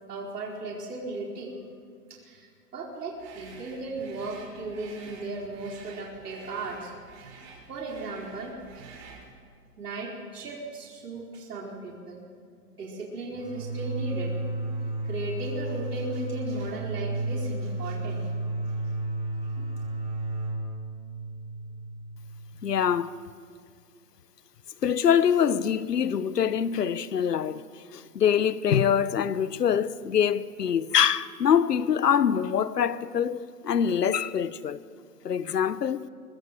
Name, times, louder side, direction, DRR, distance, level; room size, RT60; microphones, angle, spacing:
voice 1, 0.1-1.6 2.1-6.9 7.7-8.6 8.9-9.0 9.8-12.2 12.7-14.4 15.0-18.3 19.6-19.7, right 2 dB, 75° right, 4.5 m, -36 dB
sound 1, 3.2-9.3, right 4 dB, 40° right, 7.1 m, -49 dB
sound 2, 13.3-22.8, right 2 dB, 15° right, 4.2 m, -33 dB
voice 2, 22.6-23.1 24.8-27.6 27.9-34.8 35.2-36.1, left 8 dB, 85° left, 1.1 m, -24 dB
24.0 x 21.5 x 7.6 m
hypercardioid pair, 135°, 47 cm